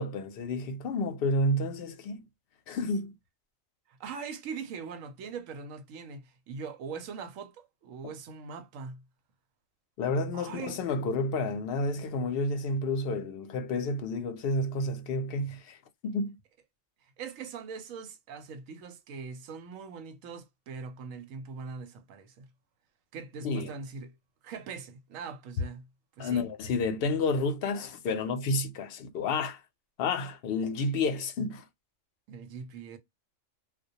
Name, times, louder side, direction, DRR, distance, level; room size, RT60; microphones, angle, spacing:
voice 1, 0.0-2.2 2.7-3.1 10.0-15.8 16.0-16.4 23.4-23.7 26.2-29.6 30.0-31.6, left 2 dB, 65° left, 0.6 m, -30 dB
voice 2, 3.9-9.0 10.3-10.8 17.0-22.5 23.1-24.1 24.4-25.9 26.2-26.5 32.3-33.0, right 5 dB, 90° right, 1.0 m, -41 dB
2.2 x 2.1 x 2.7 m
omnidirectional pair, 1.4 m